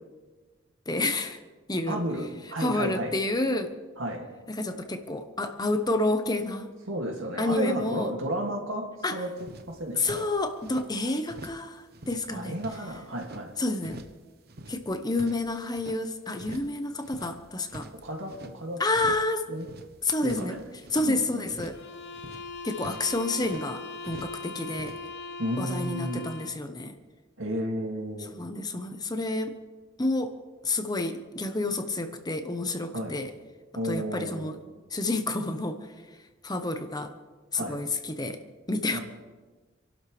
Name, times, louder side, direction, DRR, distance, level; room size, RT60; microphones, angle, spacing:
voice 1, 0.9-1.4 1.7-2.0 2.6-3.7 4.5-6.7 7.4-8.1 9.0-9.2 9.9-12.6 13.6-14.0 14.7-17.9 18.8-19.5 20.0-20.6 20.9-21.8 22.6-25.0 25.6-27.0 28.3-29.6 30.0-30.3 30.6-33.3 33.8-34.6 34.9-35.8 36.4-37.2 37.5-38.4 38.7-39.0, left 2 dB, 20° left, 7 dB, 0.9 m, -29 dB
voice 2, 1.9-3.2 4.0-4.3 6.9-9.3 9.7-10.3 12.3-13.5 17.9-18.8 19.5-19.7 20.2-20.6 21.1-21.5 25.4-26.2 27.4-28.3 32.9-33.2 33.7-34.6 37.6-37.8 38.9-39.0, equal, 85° right, 2 dB, 2.3 m, -32 dB
sound 1, 9.1-9.2 9.4-10.9 11.2-11.7 11.9-13.4 13.8-14.2 14.5-16.0 16.4-16.8 17.0-18.6 18.9-19.3 19.6-21.1 21.5-21.9 22.1-23.7 24.0-24.4 24.7-25.0, right 1 dB, 50° right, 0.9 m, -45 dB
sound 2, 21.7-26.7, left 4 dB, 55° left, 1.0 m, -40 dB
27.0 x 12.0 x 3.3 m, 1.3 s
head